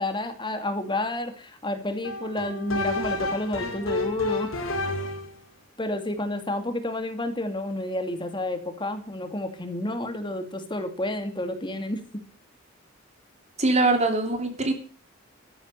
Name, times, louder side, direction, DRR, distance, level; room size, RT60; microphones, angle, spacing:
voice 1, 0.0-4.5 5.8-12.0, left 1 dB, 25° left, 8 dB, 2.4 m, -30 dB
sound 1, 2.0-5.4, left 2 dB, 75° left, 4.4 m, -30 dB
voice 2, 13.6-14.7, right 2 dB, 35° right, 5 dB, 3.2 m, -22 dB
13.5 x 11.5 x 6.8 m, 0.41 s
head